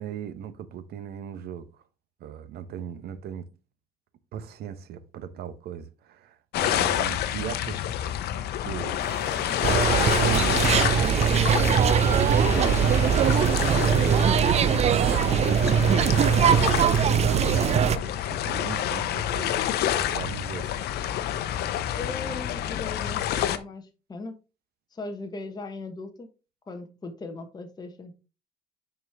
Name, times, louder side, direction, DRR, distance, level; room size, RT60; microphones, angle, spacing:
voice 1, 0.0-1.7 2.2-3.5 4.3-7.9 8.6-9.0 10.1-11.3 12.0-16.1 16.6-20.7, right 8 dB, 70° right, 1.0 m, -37 dB
sound 1, 6.5-23.6, left 11 dB, 75° left, 0.8 m, -28 dB
sound 2, 9.0-15.3, right 2 dB, 15° right, 0.9 m, -39 dB
sound 3, 9.6-18.0, right 8 dB, 40° right, 0.4 m, -21 dB
voice 2, 22.0-24.4 24.9-26.3 26.7-28.1, left 3 dB, 25° left, 1.2 m, -38 dB
9.3 x 4.5 x 3.5 m
cardioid pair, 110°, 17 cm